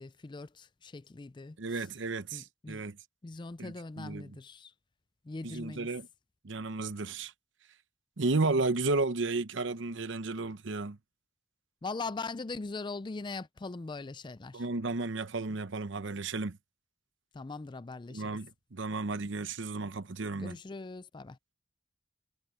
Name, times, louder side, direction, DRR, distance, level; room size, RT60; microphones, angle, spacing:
voice 1, 0.0-1.6 2.3-2.8 3.2-4.7 5.2-5.9 11.8-14.6 17.3-18.4 20.4-21.4, left 3 dB, 25° left, 0.4 m, -41 dB
voice 2, 1.6-3.0 3.6-4.3 5.4-6.1 6.4-7.3 8.2-11.0 14.5-16.6 18.1-20.6, right 3 dB, 65° right, 0.8 m, -33 dB
head